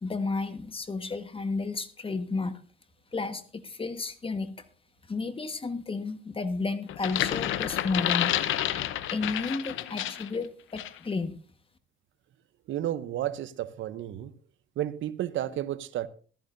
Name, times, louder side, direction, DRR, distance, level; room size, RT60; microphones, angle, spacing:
voice 1, 0.0-2.6 3.1-4.5 5.1-8.5 9.1-11.4, left 3 dB, 25° left, 1.4 m, -32 dB
sound 1, 6.9-10.3 10.8-11.0, left 12 dB, 80° left, 0.8 m, -29 dB
voice 2, 12.7-14.3 14.8-16.1, right 12 dB, 75° right, 0.7 m, -32 dB
15.0 x 13.0 x 2.6 m
cardioid pair, 90°, 20 cm